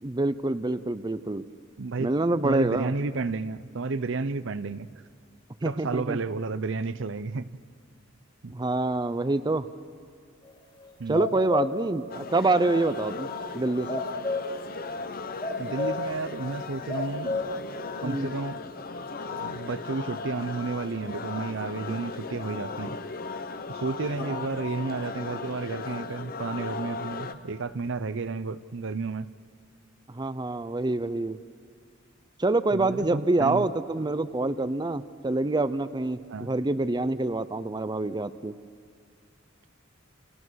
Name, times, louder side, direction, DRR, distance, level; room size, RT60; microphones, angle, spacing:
voice 1, 0.0-1.4 2.0-2.9 5.6-6.2 8.5-9.7 11.1-13.3 13.5-14.0 18.0-18.3 24.2-24.4 30.1-31.4 32.4-38.5, right 2 dB, 20° right, 13 dB, 0.6 m, -26 dB
voice 2, 1.8-2.1 2.4-4.9 5.6-7.5 8.4-8.5 11.0-11.3 15.6-17.4 18.0-18.6 19.3-23.0 23.7-29.3 32.7-33.7 36.3-36.5, right 4 dB, 65° right, 14 dB, 0.7 m, -32 dB
sound 1, 10.8-11.8 12.2-12.3 13.9-14.6 15.4-16.2 16.5-16.6 16.9-17.7 18.0-18.1, left 2 dB, 25° left, 2.6 m, -31 dB
sound 2, 12.1-27.3, left 4 dB, 45° left, 1.0 m, -37 dB
29.5 x 28.5 x 6.4 m, 2.1 s
head